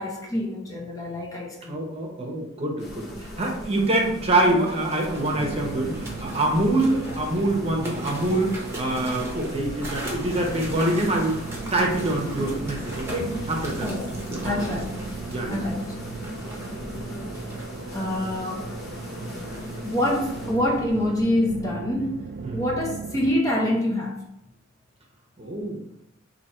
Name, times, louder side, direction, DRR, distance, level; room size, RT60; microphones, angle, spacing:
voice 1, 0.0-1.8 7.1-7.5 13.8-14.1 14.4-14.9 15.5-16.1 17.9-18.7 19.8-22.2 22.5-24.2, left 1 dB, 15° left, 0.6 m, -26 dB
voice 2, 1.7-11.4 11.7-13.9 14.3-14.7 15.3-15.7 22.4-22.6 25.4-25.8, right 1 dB, 30° right, 0.9 m, -25 dB
sound 1, 2.8-20.5, equal, 55° left, 1.1 m, -38 dB
sound 2, 4.4-21.2, right 1 dB, 15° right, 1.1 m, -41 dB
sound 3, 5.3-23.3, right 4 dB, 50° right, 0.4 m, -38 dB
4.1 x 2.8 x 4.3 m
head